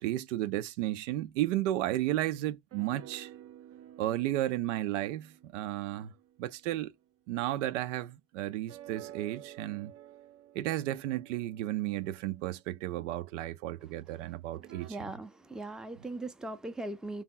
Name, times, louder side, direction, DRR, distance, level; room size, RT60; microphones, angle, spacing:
voice 1, 0.0-3.3 4.0-6.1 6.4-6.9 7.3-9.9 10.5-15.0, right 14 dB, 85° right, 0.6 m, -33 dB
sound 1, 2.7-7.1 8.7-13.2 14.5-14.9, right 11 dB, 40° right, 0.7 m, -52 dB
voice 2, 14.6-17.2, right 2 dB, ahead, 0.5 m, -40 dB
3.4 x 3.0 x 3.8 m
supercardioid pair, 90°, 36 cm